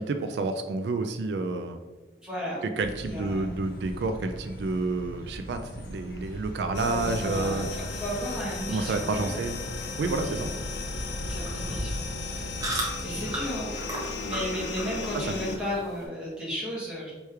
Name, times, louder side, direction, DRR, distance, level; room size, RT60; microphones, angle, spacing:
voice 1, 0.0-1.8 2.6-7.7 8.7-9.5 10.0-10.5 15.1-15.4, right 3 dB, 75° right, 8 dB, 0.3 m, -29 dB
voice 2, 2.2-2.6 3.0-3.4 6.8-9.4 10.2-10.4 11.2-12.0 12.3-12.5 13.0-13.7 14.2-17.1, equal, 5° right, -8 dB, 1.5 m, -34 dB
sound 1, 2.8-12.9, equal, 60° left, 0.9 m, -40 dB
sound 2, 6.7-15.6, left 3 dB, 80° left, 0.5 m, -36 dB
sound 3, 7.5-16.1, right 1 dB, 20° right, 1.0 m, -39 dB
3.3 x 3.1 x 4.6 m, 1.2 s
head